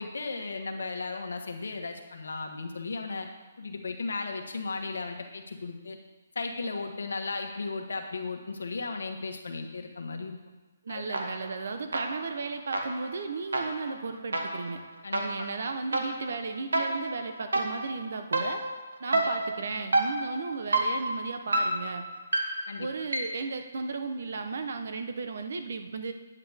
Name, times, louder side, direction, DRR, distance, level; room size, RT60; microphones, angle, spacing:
voice 1, 0.0-3.3 3.6-6.0 6.3-10.4 10.9-11.2 15.0-15.5 19.1-19.2 22.7-22.9, left 3 dB, 80° left, 4 dB, 1.3 m, -35 dB
voice 2, 10.8-14.8 15.1-18.6 19.0-22.0 22.8-26.1, right 4 dB, 65° right, 7 dB, 0.9 m, -35 dB
sound 1, 11.1-11.6 11.9-23.5, right 2 dB, 90° right, 1.3 m, -31 dB
9.6 x 8.3 x 3.5 m, 1.2 s
hypercardioid pair, 145°, 0 cm